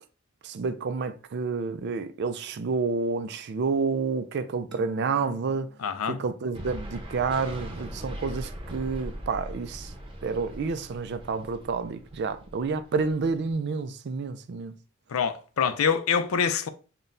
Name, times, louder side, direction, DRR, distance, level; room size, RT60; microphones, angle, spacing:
voice 1, 0.4-5.7 6.1-9.9 10.2-14.8, right 4 dB, 55° right, 0.4 m, -29 dB
sound 1, 4.7-7.4, equal, 5° left, 0.8 m, -53 dB
voice 2, 5.8-6.2 15.1-16.7, left 6 dB, 85° left, 0.4 m, -25 dB
sound 2, 6.5-13.5, equal, 25° right, 0.7 m, -40 dB
5.7 x 2.2 x 2.6 m
head